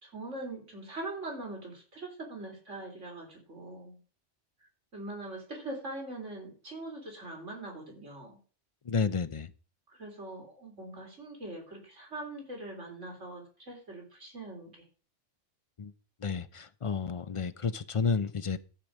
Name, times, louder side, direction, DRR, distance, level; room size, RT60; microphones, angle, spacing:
voice 1, 0.0-4.0 4.9-8.4 9.9-14.8, right 2 dB, 85° right, 4.1 m, -42 dB
voice 2, 8.9-9.5 15.8-15.9 16.2-18.6, left 5 dB, 40° left, 0.5 m, -31 dB
14.0 x 5.0 x 7.3 m
omnidirectional pair, 1.2 m